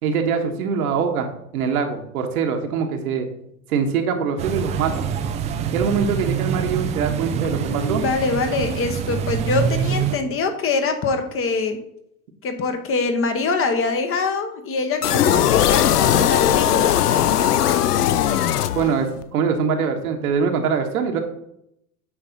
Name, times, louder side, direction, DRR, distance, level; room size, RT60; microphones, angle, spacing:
voice 1, 0.0-3.3 3.7-5.1 5.7-8.0 18.7-21.2, right 6 dB, 70° right, 4 dB, 1.4 m, -23 dB
sound 1, 4.4-10.1, right 7 dB, 15° right, 0.3 m, -25 dB
voice 2, 7.6-11.8 12.4-16.9, left 4 dB, 30° left, 7 dB, 1.0 m, -24 dB
sound 2, 15.0-19.2, left 11 dB, 90° left, 0.6 m, -18 dB
8.8 x 3.2 x 5.3 m, 0.76 s
hypercardioid pair, 100°, 45 cm